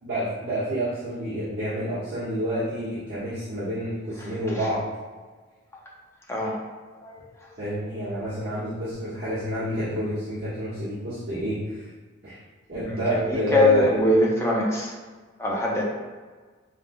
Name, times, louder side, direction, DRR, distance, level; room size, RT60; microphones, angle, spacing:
voice 1, 0.0-4.8 7.6-11.9 12.2-12.4 12.7-13.9 15.8-15.9, right 1 dB, 55° right, -14 dB, 1.4 m, -29 dB
voice 2, 12.9-14.9 15.4-15.8, left 1 dB, 15° left, -3 dB, 0.6 m, -22 dB
6.1 x 3.4 x 2.2 m, 1.4 s
head